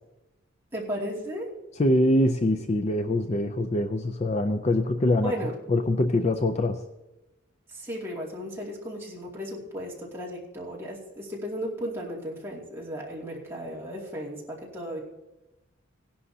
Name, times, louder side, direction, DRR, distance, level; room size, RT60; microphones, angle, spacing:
voice 1, 0.7-1.5 5.2-5.5 7.7-15.0, equal, 10° right, -5 dB, 2.4 m, -35 dB
voice 2, 1.8-5.3 5.7-6.8, left 1 dB, 35° left, 7 dB, 0.4 m, -24 dB
17.0 x 11.0 x 2.8 m, 0.99 s
head